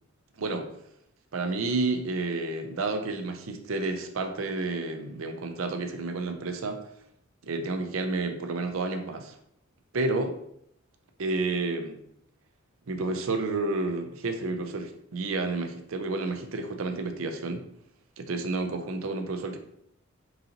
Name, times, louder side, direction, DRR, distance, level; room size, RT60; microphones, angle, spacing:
voice 1, 0.4-0.7 1.3-6.8 7.4-9.4 9.9-10.3 11.2-12.0 12.9-17.6 18.2-19.6, right 3 dB, 90° right, 6 dB, 0.5 m, -30 dB
3.9 x 2.8 x 3.9 m, 0.72 s
head